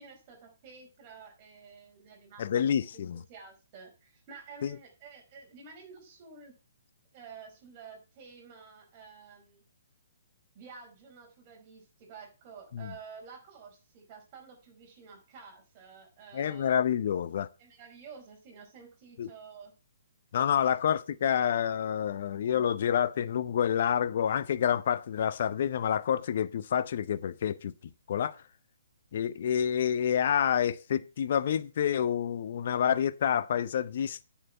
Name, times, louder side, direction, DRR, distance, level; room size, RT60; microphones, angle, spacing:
voice 1, 0.0-6.6 7.1-9.6 10.5-16.7 17.6-19.7 20.6-20.7, right 5 dB, 35° right, 4.6 m, -50 dB
voice 2, 2.4-3.2 4.6-4.8 12.7-12.9 16.3-17.5 19.2-19.3 20.3-27.7 28.1-28.4 29.1-34.2, left 9 dB, 55° left, 0.6 m, -28 dB
9.2 x 7.2 x 5.4 m
figure-of-eight pair, 130°, 0 cm